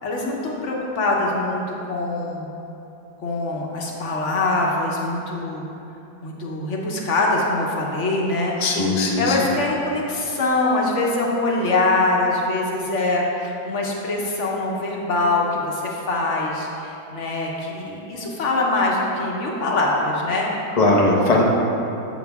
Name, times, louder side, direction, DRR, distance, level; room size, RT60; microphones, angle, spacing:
voice 1, 0.0-2.5 3.2-5.6 6.2-8.5 9.1-20.5, left 2 dB, 50° left, -2 dB, 0.9 m, -23 dB
voice 2, 8.6-9.5 20.7-21.4, left 2 dB, 75° left, -2 dB, 0.3 m, -19 dB
7.7 x 6.2 x 3.5 m, 2.9 s
omnidirectional pair, 2.0 m